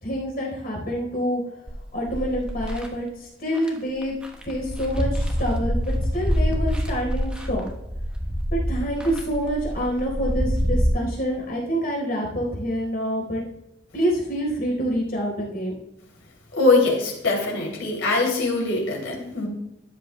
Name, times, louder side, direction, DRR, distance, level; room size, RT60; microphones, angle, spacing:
voice 1, 0.0-1.4 1.9-4.1 4.5-7.7 8.5-13.4 13.9-15.7, equal, 50° left, -1 dB, 4.0 m, -27 dB
sound 1, 1.7-2.9 3.6-3.7 4.0-10.9, equal, 5° right, 1.1 m, -26 dB
voice 2, 16.5-19.5, left 3 dB, 80° left, -1 dB, 2.9 m, -22 dB
13.0 x 9.5 x 2.2 m, 0.85 s
head